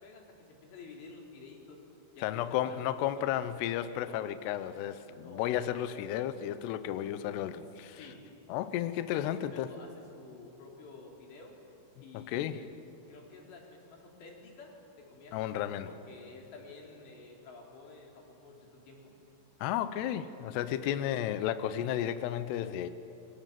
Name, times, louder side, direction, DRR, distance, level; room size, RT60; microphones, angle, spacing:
voice 1, 0.0-1.8 2.1-3.4 3.9-4.2 5.2-5.4 7.8-8.2 9.1-11.6 12.0-12.6 13.1-19.1 20.5-21.1, left 3 dB, 60° left, 0 dB, 5.9 m, -51 dB
voice 2, 2.2-8.0 8.5-9.7 12.1-12.6 15.3-15.9 19.6-22.9, left 11 dB, 80° left, 11 dB, 2.5 m, -33 dB
30.0 x 23.5 x 7.5 m, 2.8 s
omnidirectional pair, 5.7 m